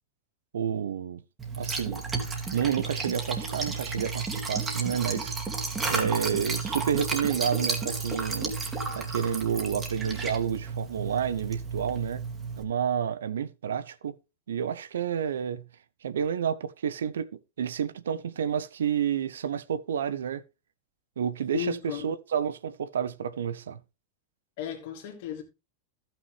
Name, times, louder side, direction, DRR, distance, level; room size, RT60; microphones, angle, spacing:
voice 1, 0.5-1.2 1.6-2.0 2.5-5.3 5.9-8.6 8.9-12.2 12.6-14.1 14.5-15.6 16.0-20.4 21.2-23.8, right 8 dB, 70° right, 0.5 m, -30 dB
Liquid, 1.4-12.6, right 4 dB, 20° right, 2.2 m, -32 dB
voice 2, 21.5-22.1 24.6-25.4, left 9 dB, 55° left, 2.4 m, -34 dB
14.5 x 6.1 x 3.2 m
figure-of-eight pair, 90°, 0 cm